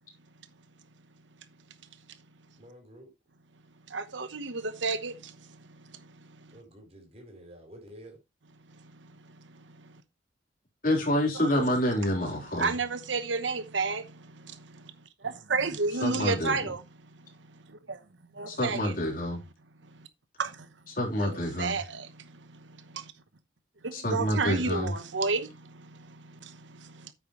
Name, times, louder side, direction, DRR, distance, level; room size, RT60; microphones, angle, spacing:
voice 1, 2.6-3.1 6.5-8.2, equal, 35° right, 4.2 m, -49 dB
voice 2, 3.9-6.0 9.5-9.9 11.5-11.6 12.6-14.9 15.2-16.8 17.7-18.0 18.3-18.9 20.0-20.1 20.4-20.7 21.2-23.1 23.8-27.1, right 4 dB, 85° right, 1.0 m, -32 dB
voice 3, 10.8-12.7 16.0-16.6 18.5-19.4 20.9-21.8 23.9-24.9, left 1 dB, 45° left, 3.8 m, -28 dB
9.3 x 8.4 x 3.1 m
head